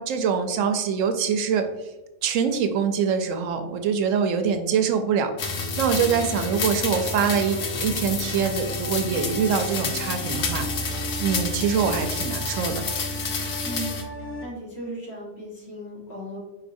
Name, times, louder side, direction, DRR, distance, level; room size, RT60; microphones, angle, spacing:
voice 1, 0.0-1.7 2.2-10.9 11.2-12.8, right 6 dB, 75° right, 7 dB, 0.9 m, -24 dB
sound 1, 5.4-14.0, left 4 dB, 80° left, 1.1 m, -30 dB
sound 2, 5.4-14.4, left 1 dB, 20° left, 0.3 m, -35 dB
voice 2, 13.6-14.0 14.4-16.4, equal, 55° left, -4 dB, 1.7 m, -36 dB
5.0 x 4.1 x 2.6 m, 1.1 s
omnidirectional pair, 1.4 m